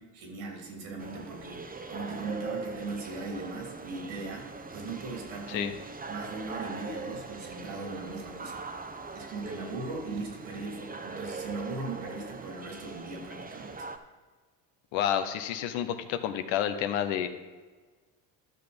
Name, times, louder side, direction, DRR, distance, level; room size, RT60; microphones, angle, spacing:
voice 1, 0.0-5.8 6.1-8.6 9.1-13.9, right 3 dB, 75° right, 1 dB, 3.1 m, -39 dB
sound 1, 1.0-14.0, right 3 dB, 20° right, 0.9 m, -41 dB
voice 2, 14.9-17.3, left 10 dB, 70° left, 9 dB, 1.1 m, -29 dB
12.0 x 6.1 x 5.2 m, 1.4 s
hypercardioid pair, 70°, 48 cm